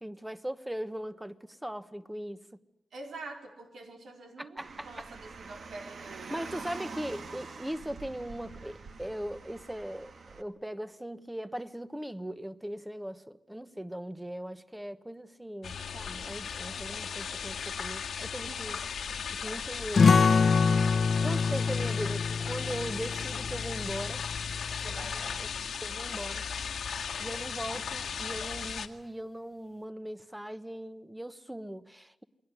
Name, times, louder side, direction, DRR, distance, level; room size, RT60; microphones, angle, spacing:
voice 1, 0.0-2.4 4.4-4.9 6.3-18.8 19.3-20.2 21.2-24.3 25.4-25.5 25.8-26.5 27.2-32.2, equal, 5° right, 1.1 m, -39 dB
voice 2, 2.9-6.5 6.8-7.3 18.5-18.9 24.8-25.4, right 3 dB, 85° right, 4.3 m, -46 dB
Car, 4.6-10.4, right 4 dB, 60° right, 2.0 m, -45 dB
sound 1, 15.6-28.9, left 7 dB, 90° left, 1.8 m, -36 dB
sound 2, 20.0-25.2, left 5 dB, 60° left, 1.1 m, -26 dB
28.5 x 21.5 x 9.5 m
wide cardioid pair, 130°, 0 cm